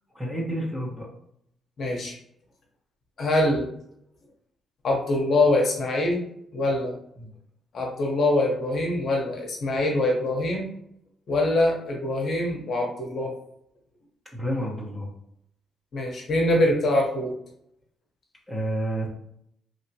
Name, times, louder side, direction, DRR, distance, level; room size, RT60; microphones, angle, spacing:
voice 1, 0.1-1.1 7.2-7.3 14.3-15.1 18.5-19.1, right 1 dB, 10° right, -2 dB, 1.1 m, -29 dB
voice 2, 1.8-2.2 3.2-3.6 4.8-6.2 6.5-7.0 7.7-10.7 11.3-13.3 15.9-17.3, left 1 dB, 55° left, 0 dB, 0.9 m, -24 dB
2.9 x 2.8 x 2.8 m, 0.73 s
cardioid pair, 90°, 0 cm